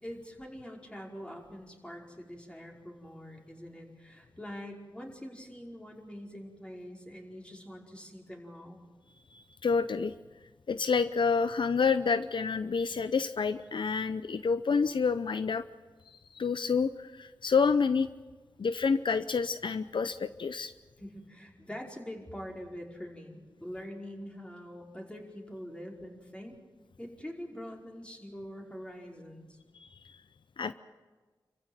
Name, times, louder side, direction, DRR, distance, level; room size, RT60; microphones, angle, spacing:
voice 1, 0.0-8.8 21.0-26.6 27.0-29.6, equal, 10° left, 0 dB, 5.2 m, -44 dB
voice 2, 9.3-10.1 10.7-15.6 16.1-18.1 18.6-20.7 29.8-30.2 30.6-30.7, left 5 dB, 70° left, 12 dB, 0.6 m, -28 dB
27.5 x 15.0 x 9.0 m, 1.3 s
cardioid pair, 55°, 9 cm